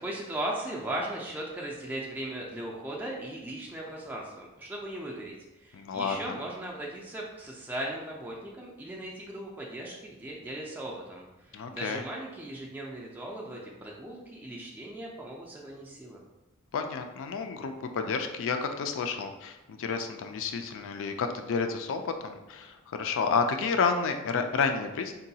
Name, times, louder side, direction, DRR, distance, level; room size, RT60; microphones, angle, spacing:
voice 1, 0.0-16.2, right 1 dB, 10° right, -3 dB, 0.4 m, -38 dB
voice 2, 5.7-6.4 11.5-12.0 16.7-25.1, left 5 dB, 65° left, 6 dB, 0.4 m, -30 dB
3.8 x 2.2 x 2.7 m, 1.0 s
head